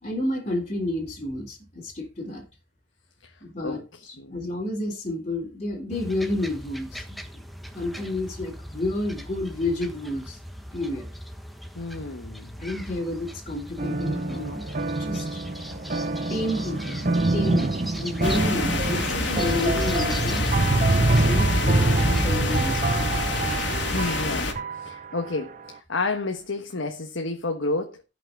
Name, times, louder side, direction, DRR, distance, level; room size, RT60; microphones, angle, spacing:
voice 1, 0.0-2.4 3.4-7.4 7.7-10.4 10.7-11.1 12.6-14.6 15.0-15.3 16.3-20.4 21.2-22.9, left 2 dB, 35° left, 3.4 m, -30 dB
voice 2, 3.6-4.4 11.7-12.5 23.9-28.0, left 3 dB, 80° left, 1.4 m, -31 dB
sound 1, 5.9-24.4, equal, ahead, 1.2 m, -40 dB
sound 2, 13.8-25.2, right 2 dB, 40° right, 0.7 m, -25 dB
sound 3, 18.2-24.5, left 2 dB, 65° left, 2.6 m, -27 dB
17.5 x 6.0 x 3.8 m
head